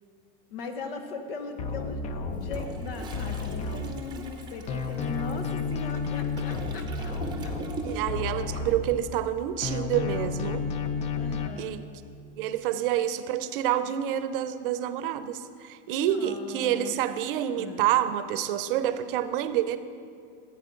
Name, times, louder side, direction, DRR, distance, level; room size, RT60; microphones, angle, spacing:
voice 1, 0.5-7.1 7.4-7.5 11.2-11.7 15.9-16.9 17.6-17.9, left 3 dB, 75° left, 6 dB, 1.3 m, -39 dB
sound 1, 1.6-4.4 4.7-9.3 9.6-11.5, left 4 dB, 25° left, 0.5 m, -32 dB
Toilet flush, 2.3-8.3 8.6-8.8, right 4 dB, 15° right, 0.7 m, -42 dB
voice 2, 7.8-10.6 11.6-11.8 12.4-19.8, right 11 dB, 65° right, 12 dB, 0.7 m, -28 dB
14.5 x 8.4 x 3.8 m, 2.3 s
supercardioid pair, 150°, 29 cm